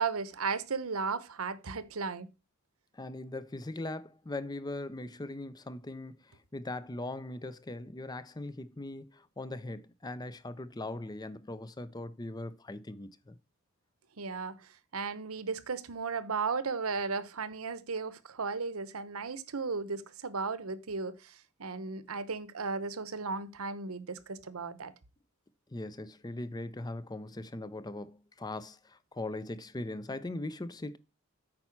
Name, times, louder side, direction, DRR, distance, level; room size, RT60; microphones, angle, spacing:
voice 1, 0.0-2.3 14.2-14.6 14.9-24.9, right 4 dB, 90° right, 1.0 m, -35 dB
voice 2, 2.9-13.4 25.7-31.0, left 2 dB, 20° left, 0.5 m, -40 dB
8.8 x 5.5 x 5.8 m
head